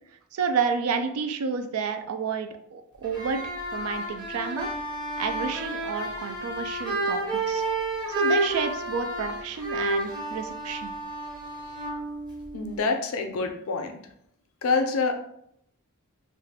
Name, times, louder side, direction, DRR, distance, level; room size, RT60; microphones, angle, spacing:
voice 1, 0.3-4.7 5.2-7.6 8.1-11.0, right 6 dB, 90° right, 8 dB, 0.4 m, -30 dB
sound 1, 3.0-12.8, right 2 dB, 20° right, 0.6 m, -31 dB
voice 2, 12.5-13.9 14.6-15.1, left 4 dB, 70° left, 5 dB, 0.5 m, -26 dB
2.5 x 2.3 x 3.4 m, 0.73 s
head